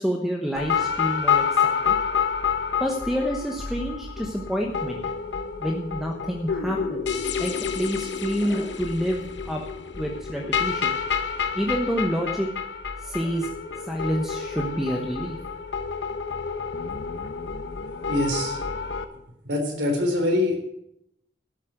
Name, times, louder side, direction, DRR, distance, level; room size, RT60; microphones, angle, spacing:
voice 1, 0.0-2.2 2.8-5.0 5.6-9.6 9.9-11.0 11.5-12.5 13.0-13.5 13.9-15.4, equal, ahead, 0 dB, 1.0 m, -28 dB
sound 1, 0.6-19.0, left 6 dB, 75° left, 1.0 m, -28 dB
voice 2, 18.1-18.6 19.4-20.5, left 1 dB, 85° right, 3 dB, 3.7 m, -24 dB
12.5 x 7.5 x 7.8 m, 0.82 s
head